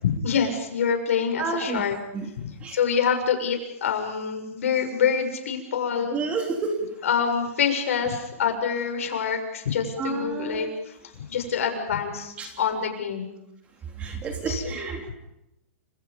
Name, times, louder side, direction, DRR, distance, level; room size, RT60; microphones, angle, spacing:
voice 1, 0.0-2.0 2.4-6.2 7.0-13.3 14.5-14.8, left 7 dB, 70° left, 4 dB, 7.0 m, -26 dB
voice 2, 1.4-1.8 2.1-2.3 2.6-2.8 6.1-6.8 10.0-10.7 12.4-12.5 14.0-15.0, right 4 dB, 15° right, 4 dB, 3.3 m, -30 dB
30.0 x 27.0 x 5.5 m, 0.86 s
hypercardioid pair, 160°, 8 cm